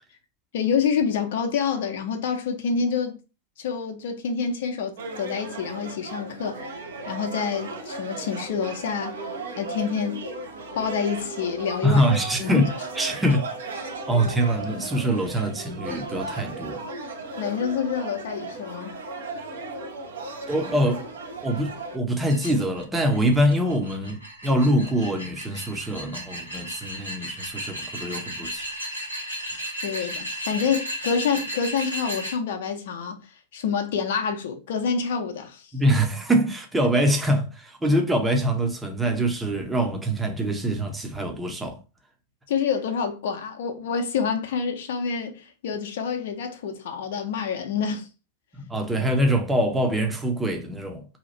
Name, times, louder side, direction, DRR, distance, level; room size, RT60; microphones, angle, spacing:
voice 1, 0.5-3.2 3.6-6.6 7.1-9.2 9.6-10.2 10.8-12.0 12.4-12.7 17.4-19.0 29.6-33.2 33.5-35.7 42.5-48.1, left 6 dB, 55° left, 0.6 m, -27 dB
sound 1, 5.0-22.0, right 3 dB, 65° right, 0.7 m, -36 dB
voice 2, 11.8-12.7 13.0-13.5 14.1-16.8 20.5-21.1 21.4-28.6 35.7-41.8 48.5-51.1, right 1 dB, 10° right, 0.7 m, -24 dB
sound 2, 22.3-32.3, equal, 90° right, 1.3 m, -35 dB
2.8 x 2.4 x 4.1 m
figure-of-eight pair, 90°, 0 cm